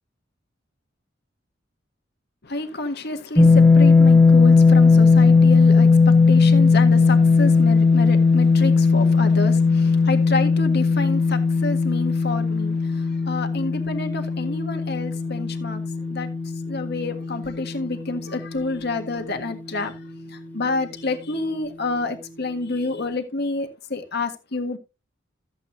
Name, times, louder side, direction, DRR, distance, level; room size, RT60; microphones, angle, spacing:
voice 1, 2.4-16.3 16.7-20.0 20.3-24.8, left 3 dB, 60° left, 1.7 m, -29 dB
sound 1, 3.4-19.3, left 4 dB, 10° left, 0.9 m, -17 dB
14.0 x 8.3 x 2.8 m
head